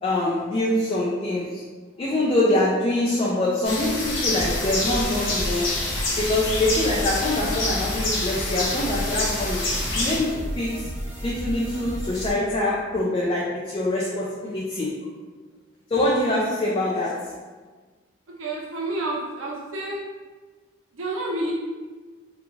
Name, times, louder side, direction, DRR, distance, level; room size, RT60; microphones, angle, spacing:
voice 1, 0.0-1.6 2.0-5.7 6.2-9.6 9.9-10.9 11.2-15.1 15.9-17.3, left 1 dB, 30° left, -5 dB, 0.3 m, -24 dB
sound 1, 3.6-10.2, left 2 dB, 75° left, 0.6 m, -27 dB
sound 2, 4.3-12.3, equal, 10° right, 0.8 m, -33 dB
voice 2, 18.4-20.0 20.9-21.5, right 2 dB, 85° right, -2 dB, 0.6 m, -29 dB
2.3 x 2.3 x 3.0 m, 1.4 s
head